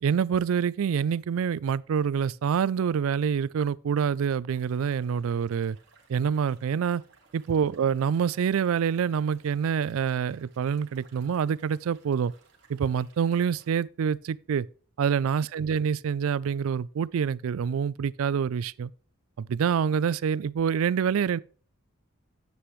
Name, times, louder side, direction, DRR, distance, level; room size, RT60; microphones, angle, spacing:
voice 1, 0.0-5.8 6.1-7.0 7.3-12.3 12.7-14.7 15.0-18.9 19.4-21.4, right 7 dB, 75° right, 0.3 m, -26 dB
sound 1, 4.5-13.7, right 4 dB, 55° right, 2.1 m, -60 dB
9.8 x 7.9 x 3.1 m
head